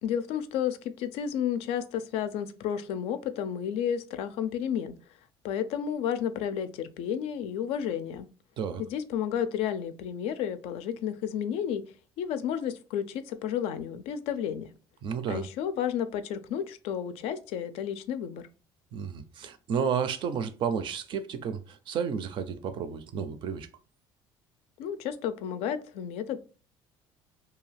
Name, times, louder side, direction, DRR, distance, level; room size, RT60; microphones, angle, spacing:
voice 1, 0.0-5.0 5.4-8.3 8.8-11.8 12.2-14.7 15.3-18.5 24.8-26.4, left 9 dB, 75° left, 0.4 m, -32 dB
voice 2, 15.0-15.5 18.9-23.7, right 7 dB, 55° right, 0.4 m, -32 dB
2.7 x 2.3 x 3.2 m
cardioid pair, 105°, 10 cm